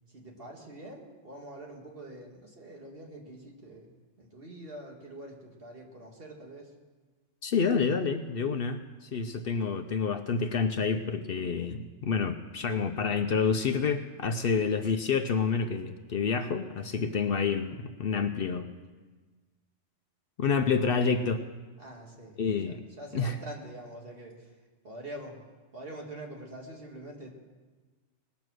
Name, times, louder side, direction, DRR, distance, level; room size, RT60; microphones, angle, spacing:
voice 1, 0.1-6.7 21.8-22.4 22.7-24.6 24.8-25.4 25.7-27.3, right 1 dB, 55° right, 0 dB, 2.1 m, -45 dB
voice 2, 7.4-18.7 20.4-21.4 22.4-22.8 23.1-23.4, left 5 dB, 60° left, 8 dB, 0.8 m, -28 dB
19.5 x 7.1 x 6.3 m, 1.3 s
omnidirectional pair, 1.2 m